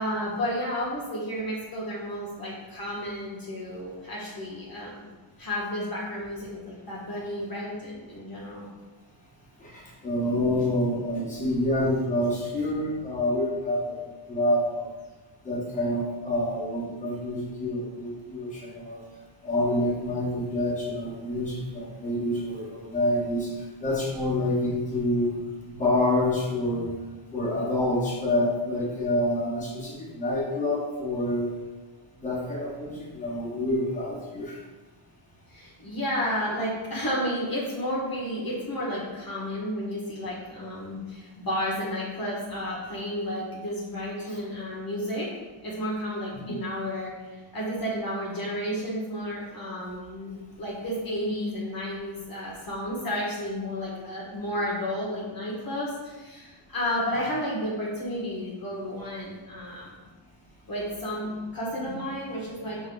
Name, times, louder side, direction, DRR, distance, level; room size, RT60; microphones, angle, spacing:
voice 1, 0.0-5.1 5.4-8.7 35.5-45.3 45.6-59.9 60.7-62.9, equal, 45° left, -5 dB, 1.1 m, -32 dB
voice 2, 9.6-14.0 14.3-14.9 15.4-19.0 19.4-23.5 23.8-25.3 25.7-27.0 27.3-31.5 32.2-34.6 44.2-44.3 46.4-46.6 61.8-62.0, left 1 dB, 15° left, -6 dB, 1.2 m, -27 dB
5.4 x 2.6 x 3.7 m, 1.3 s
wide cardioid pair, 120°, 50 cm